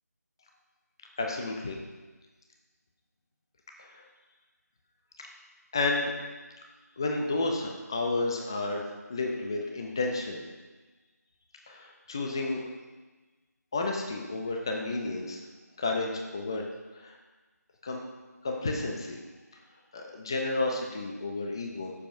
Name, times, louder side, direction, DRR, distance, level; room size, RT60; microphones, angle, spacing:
voice 1, 1.2-1.8 3.8-4.0 5.7-6.1 7.0-8.8 9.1-10.4 11.7-12.6 13.7-15.4 15.8-16.7 16.9-17.1 17.8-18.0 18.4-19.2 19.9-21.9, left 2 dB, 15° left, 1 dB, 0.4 m, -31 dB
14.5 x 7.0 x 2.6 m, 1.3 s
figure-of-eight pair, 170°, 9 cm